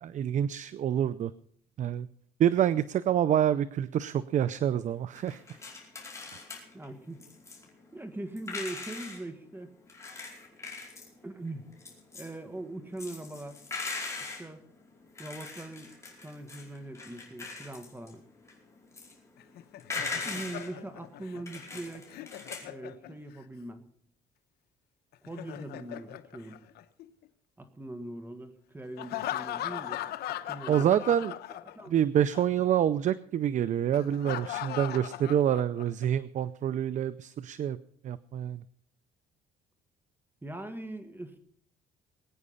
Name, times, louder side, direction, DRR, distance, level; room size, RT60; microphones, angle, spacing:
voice 1, 0.0-1.3 1.8-2.1 2.4-5.4 6.3-6.4 30.7-31.3 31.9-37.8 38.0-38.6, right 10 dB, 45° right, 16 dB, 0.5 m, -27 dB
sound 1, 5.1-9.2 9.9-22.7, left 3 dB, 15° left, 4.8 m, -41 dB
voice 2, 6.7-7.2 7.9-9.7 11.2-11.7 12.1-13.6 14.3-14.6 15.2-15.9 16.2-18.2 20.2-22.3 22.6-23.8 25.2-26.6 27.6-30.1 30.5-31.0 31.7-31.9 40.4-41.4, right 1 dB, 10° right, 9 dB, 1.6 m, -41 dB
Laughter, 19.4-23.4 25.1-27.3 29.0-32.0 32.3-32.4 33.9-36.0, left 13 dB, 70° left, 0.9 m, -39 dB
20.5 x 9.6 x 5.6 m, 0.63 s
cardioid pair, 110°, 17 cm